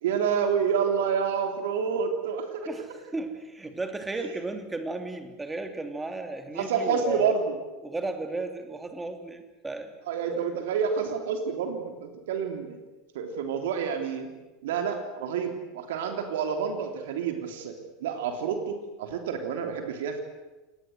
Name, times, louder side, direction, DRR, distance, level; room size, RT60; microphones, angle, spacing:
voice 1, 0.0-2.7 4.2-4.3 6.6-7.6 10.1-12.8 13.1-14.3 14.6-20.2, right 6 dB, 65° right, 5 dB, 3.4 m, -28 dB
voice 2, 2.7-7.3 7.8-9.9, right 2 dB, 10° right, 6 dB, 3.1 m, -34 dB
27.5 x 19.0 x 8.1 m, 1.1 s
figure-of-eight pair, 80°, 0 cm